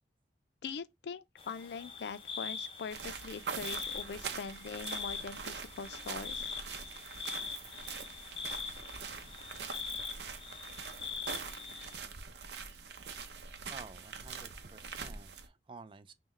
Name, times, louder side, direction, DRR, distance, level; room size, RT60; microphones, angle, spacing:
voice 1, 0.6-6.6, left 5 dB, 75° left, 0.4 m, -42 dB
sound 1, 1.4-12.0, left 6 dB, 30° left, 0.6 m, -43 dB
sound 2, 2.9-15.5, right 5 dB, 75° right, 0.6 m, -43 dB
voice 2, 13.7-16.1, right 4 dB, 30° right, 0.3 m, -51 dB
5.5 x 2.1 x 3.2 m
head